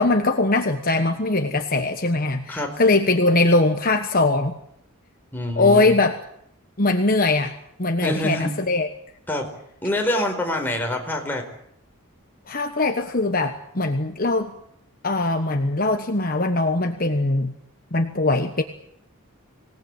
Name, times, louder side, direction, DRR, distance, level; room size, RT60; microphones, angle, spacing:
voice 1, 0.0-4.5 5.6-6.2 6.8-7.5 7.8-8.9 12.5-14.5 15.0-17.5 17.9-18.6, left 2 dB, 40° left, 6 dB, 1.3 m, -21 dB
voice 2, 5.3-6.0 8.0-8.5 9.3-9.5 9.8-11.4, left 1 dB, 10° left, 2 dB, 4.5 m, -25 dB
25.5 x 18.5 x 8.8 m, 0.72 s
head